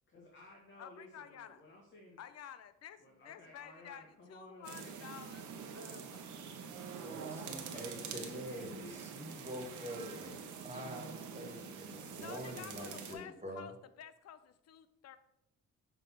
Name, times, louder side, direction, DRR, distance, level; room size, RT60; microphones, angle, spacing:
voice 1, 0.1-2.2 3.0-5.0 7.3-7.4 7.8-9.1, left 1 dB, 40° left, -2 dB, 1.6 m, -56 dB
voice 2, 0.8-1.6 2.2-5.5 5.7-6.3 6.6-6.7 12.1-15.2, left 9 dB, 55° left, 13 dB, 0.6 m, -51 dB
sound 1, 4.6-13.1, right 6 dB, 80° right, 1.1 m, -46 dB
voice 3, 6.9-10.4 10.6-13.7, equal, 20° right, 1 dB, 2.1 m, -46 dB
6.7 x 3.6 x 5.9 m, 0.80 s
cardioid pair, 90°, 30 cm